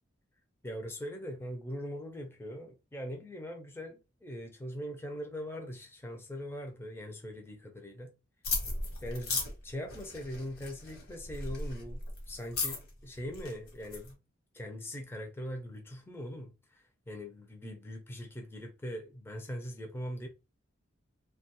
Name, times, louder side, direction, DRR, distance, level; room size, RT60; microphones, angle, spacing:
voice 1, 0.6-8.1 9.0-14.2 14.5-20.3, equal, 10° left, 0.4 m, -41 dB
sound 1, 8.4-14.1, left 3 dB, 55° left, 1.1 m, -37 dB
2.8 x 2.3 x 2.8 m
head